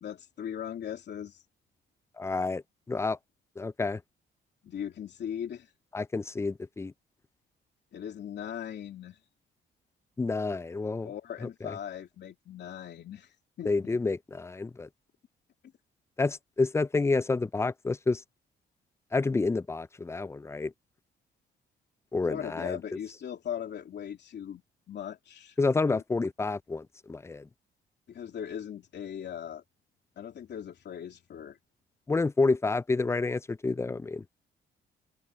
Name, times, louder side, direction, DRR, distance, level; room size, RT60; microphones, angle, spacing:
voice 1, 0.0-1.4 4.6-5.7 7.9-9.2 11.0-14.0 22.3-24.6 24.9-25.6 25.9-26.0 28.1-29.6 30.2-31.6, left 9 dB, 60° left, 2.9 m, -39 dB
voice 2, 2.2-2.6 2.9-3.2 3.6-4.0 5.9-6.9 10.2-11.1 11.6-11.8 13.7-14.9 16.2-18.2 19.1-20.7 22.1-22.8 25.6-27.5 32.1-34.2, left 3 dB, 15° left, 0.4 m, -29 dB
open air
cardioid pair, 90°, 20 cm